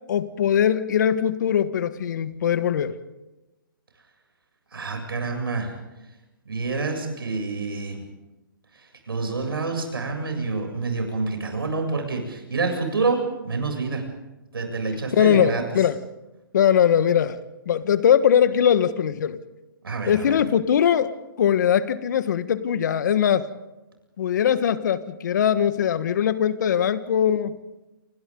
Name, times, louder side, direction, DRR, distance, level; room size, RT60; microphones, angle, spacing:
voice 1, 0.1-3.0 15.1-16.0 16.5-17.4 17.6-19.4 20.1-21.1 21.4-23.5 24.2-27.6, left 9 dB, 55° left, 12 dB, 1.5 m, -21 dB
voice 2, 4.7-5.7 6.4-8.0 8.7-14.0 14.5-15.6 19.8-20.4, right 3 dB, 85° right, 3 dB, 7.8 m, -27 dB
28.5 x 27.0 x 3.9 m, 1.0 s
hypercardioid pair, 150°, 12 cm